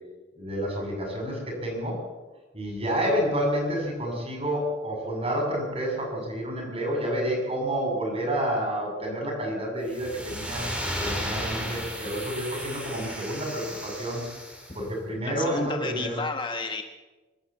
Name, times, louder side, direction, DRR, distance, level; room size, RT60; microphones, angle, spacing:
voice 1, 0.4-2.0 2.5-10.7 11.0-14.3 14.7-16.2, equal, 35° right, 1 dB, 7.2 m, -29 dB
sound 1, 9.9-14.8, equal, 5° right, 4.5 m, -34 dB
voice 2, 15.2-16.8, left 3 dB, 25° left, 5 dB, 1.4 m, -31 dB
25.0 x 13.0 x 8.2 m, 1.2 s
head